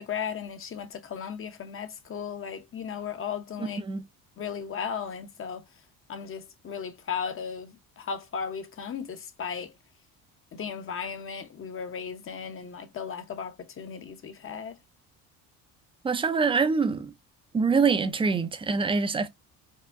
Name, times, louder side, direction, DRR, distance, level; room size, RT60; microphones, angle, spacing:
voice 1, 0.0-3.8 4.4-5.6 6.1-9.7 10.5-14.7, left 7 dB, 35° left, 0.7 m, -36 dB
voice 2, 3.6-4.0 16.0-17.1 17.5-19.3, right 5 dB, 15° right, 0.4 m, -25 dB
4.6 x 2.2 x 2.4 m
cardioid pair, 115°, 37 cm